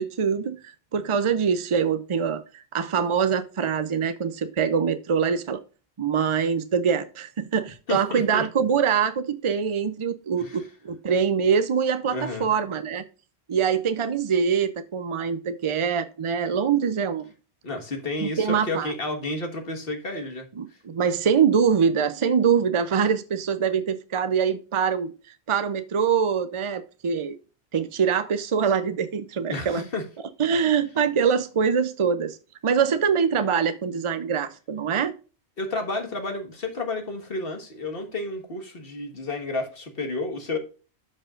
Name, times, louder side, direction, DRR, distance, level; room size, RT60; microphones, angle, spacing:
voice 1, 0.0-5.6 6.0-13.0 13.5-17.3 18.2-18.9 20.6-25.1 25.5-27.3 27.7-29.8 30.4-32.4 32.6-35.1, right 6 dB, 50° right, 0.4 m, -24 dB
voice 2, 7.9-8.4 10.4-10.6 12.1-12.5 17.6-20.8 29.5-30.0 35.6-40.6, left 2 dB, 60° left, 1.8 m, -31 dB
12.5 x 5.4 x 2.5 m
omnidirectional pair, 1.1 m